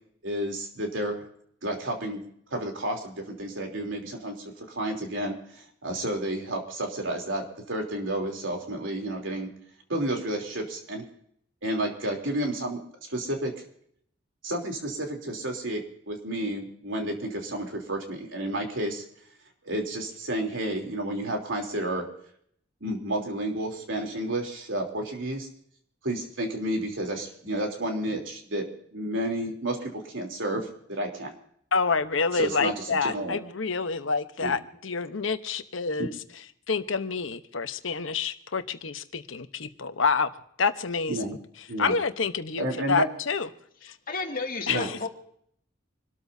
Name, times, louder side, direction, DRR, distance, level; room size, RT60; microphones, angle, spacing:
voice 1, 0.2-1.2 1.6-2.2 2.5-9.5 9.9-11.1 11.6-12.8 13.1-13.5 14.4-19.1 19.6-22.0 22.8-25.5 26.0-28.7 28.9-31.3 32.3-33.4 34.4-34.5 36.0-36.1 41.1-41.4 41.7-42.0 42.6-43.1 44.7-44.9, right 1 dB, 80° right, 2 dB, 3.4 m, -31 dB
voice 2, 31.7-36.1 36.7-40.3 40.6-41.2 41.8-43.5 43.8-43.9 44.7-44.9, left 4 dB, 85° left, 10 dB, 1.0 m, -28 dB
voice 3, 43.8-45.1, left 3 dB, 45° left, 2 dB, 2.3 m, -33 dB
27.0 x 13.0 x 2.8 m, 0.67 s
head